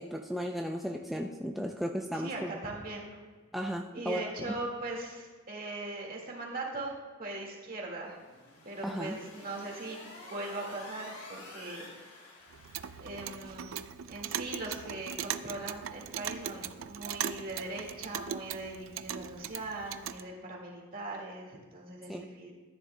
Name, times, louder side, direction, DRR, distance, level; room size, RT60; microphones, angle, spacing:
voice 1, 0.0-2.5 3.5-4.2 8.8-9.2 22.1-22.3, equal, ahead, 1 dB, 0.4 m, -35 dB
voice 2, 2.1-3.2 3.9-6.9 7.2-8.2 8.6-10.0 10.3-11.9 13.0-13.7 14.1-22.5, right 2 dB, 45° right, -1 dB, 1.9 m, -40 dB
sound 1, 8.0-13.0, left 2 dB, 75° left, 3.0 m, -49 dB
Clock, 12.5-20.2, right 9 dB, 65° right, 0.4 m, -39 dB
13.5 x 9.9 x 2.2 m, 1.5 s
head